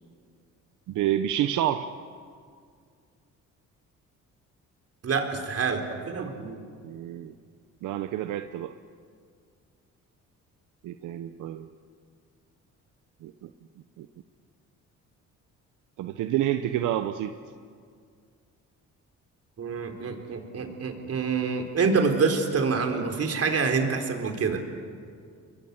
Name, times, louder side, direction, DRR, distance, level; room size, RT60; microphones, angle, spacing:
voice 1, 0.9-1.9 6.8-7.3 7.8-8.7 10.8-11.7 13.2-13.5 14.0-14.1 16.0-17.3, right 12 dB, 85° right, 8 dB, 0.9 m, -28 dB
voice 2, 5.0-6.6 19.6-24.6, right 5 dB, 50° right, 5 dB, 4.0 m, -26 dB
29.5 x 22.0 x 8.2 m, 2.2 s
cardioid pair, 90°, 30 cm